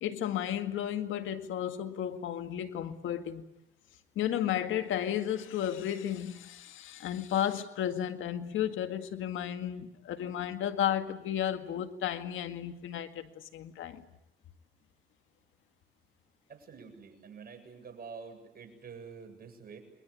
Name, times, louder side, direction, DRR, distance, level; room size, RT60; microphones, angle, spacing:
voice 1, 0.0-3.5 4.2-14.0, left 10 dB, 80° left, 2.0 m, -33 dB
voice 2, 16.5-19.8, right 5 dB, 50° right, 7.9 m, -47 dB
29.5 x 23.0 x 8.5 m
cardioid pair, 90°, 20 cm